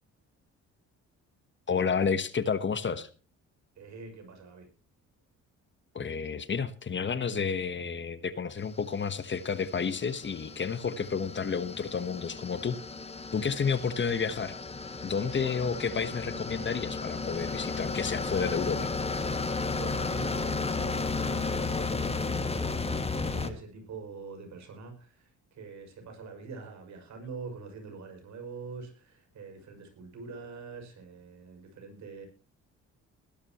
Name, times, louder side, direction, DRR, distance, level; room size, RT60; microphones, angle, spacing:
voice 1, 1.7-3.1 5.9-12.8 13.3-14.5 15.0-19.1, left 6 dB, 40° left, 13 dB, 1.3 m, -31 dB
voice 2, 3.7-4.7 15.3-15.7 19.6-32.3, right 4 dB, 65° right, 4 dB, 6.6 m, -45 dB
sound 1, 8.8-23.5, left 3 dB, 20° left, 1.8 m, -34 dB
20.5 x 12.0 x 3.1 m, 0.36 s
cardioid pair, 90°, 30 cm